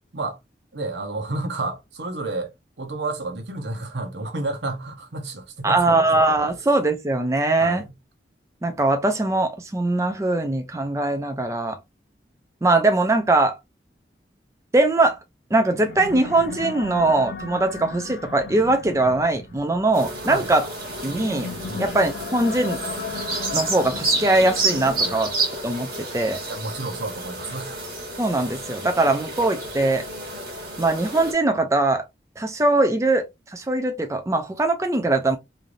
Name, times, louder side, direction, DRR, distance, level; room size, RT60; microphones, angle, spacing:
voice 1, 0.7-2.5 2.8-6.2 7.6-7.9 20.2-20.5 21.7-21.9 25.0-25.3 26.5-27.8, right 2 dB, 90° right, 0.9 m, -31 dB
voice 2, 5.6-7.8 8.6-11.8 12.6-13.6 14.7-15.2 15.5-20.7 21.0-21.5 21.8-22.8 23.5-25.3 25.6-26.4 28.2-30.1 30.8-32.1 32.4-33.3 33.5-35.4, right 2 dB, 15° right, 0.4 m, -21 dB
sound 1, 15.6-25.5, left 5 dB, 80° left, 0.4 m, -36 dB
sound 2, 19.9-31.3, right 2 dB, 55° right, 1.4 m, -30 dB
3.2 x 2.6 x 2.5 m
head